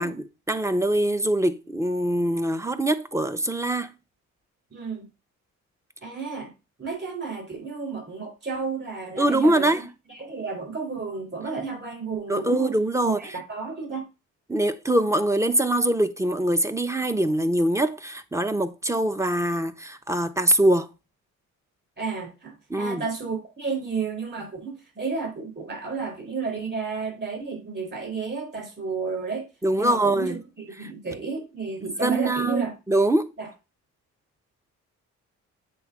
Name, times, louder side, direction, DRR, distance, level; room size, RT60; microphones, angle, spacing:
voice 1, 0.0-3.9 9.2-9.8 12.3-13.2 14.5-20.9 22.7-23.0 29.6-30.4 30.8-30.9 31.8-33.3, right 1 dB, 10° right, 0.8 m, -23 dB
voice 2, 4.7-5.1 6.0-6.5 6.8-12.7 13.0-14.0 22.0-29.5 29.7-32.7 33.4-33.5, right 4 dB, 35° right, 4.3 m, -32 dB
7.9 x 3.5 x 6.0 m
cardioid pair, 90°, 30 cm